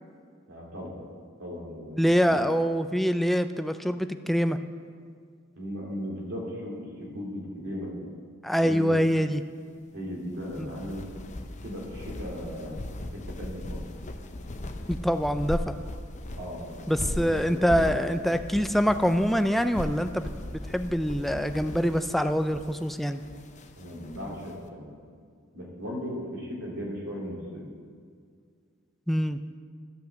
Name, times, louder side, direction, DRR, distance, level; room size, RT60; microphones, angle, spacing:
voice 1, 0.5-1.0 1.4-2.4 5.5-8.0 8.6-8.9 9.9-11.0 11.6-12.8 13.1-13.8 16.4-16.7 16.9-18.0 23.8-24.9 25.5-27.6, equal, 85° right, -3 dB, 3.1 m, -37 dB
voice 2, 2.0-4.6 8.4-9.4 10.6-10.7 14.9-15.8 16.9-23.2 29.1-29.4, equal, ahead, 9 dB, 0.4 m, -25 dB
sound 1, 10.3-24.5, left 1 dB, 35° left, 0.7 m, -38 dB
13.0 x 5.7 x 7.6 m, 2.1 s
head